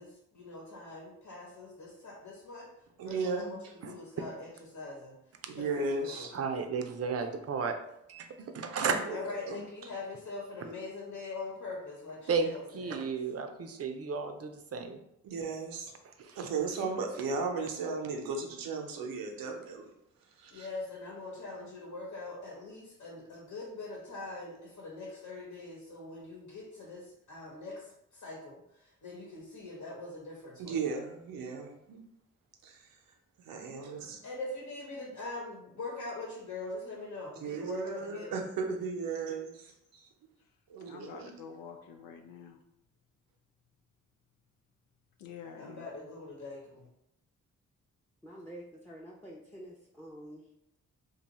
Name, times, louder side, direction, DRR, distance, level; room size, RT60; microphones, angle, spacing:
voice 1, 0.0-2.7 3.0-6.3 9.1-13.0 20.5-30.9 34.2-38.4 45.6-46.9, left 2 dB, 60° left, -3 dB, 1.0 m, -43 dB
voice 2, 3.0-3.5 5.5-6.3 8.8-9.2 9.5-9.6 15.2-15.9 16.4-19.9 20.4-20.7 30.6-32.0 32.6-32.9 33.5-34.2 37.4-40.0 40.7-41.3, right 4 dB, 85° right, 2 dB, 0.7 m, -36 dB
voice 3, 6.3-7.8 8.1-9.0 12.3-15.0 16.2-16.5, right 5 dB, 45° right, 6 dB, 0.5 m, -33 dB
voice 4, 40.8-42.6 45.2-45.9, left 6 dB, 80° left, 4 dB, 0.5 m, -47 dB
voice 5, 48.2-50.4, right 1 dB, 5° left, -2 dB, 0.6 m, -48 dB
2.6 x 2.3 x 4.1 m, 0.78 s
supercardioid pair, 55°, 34 cm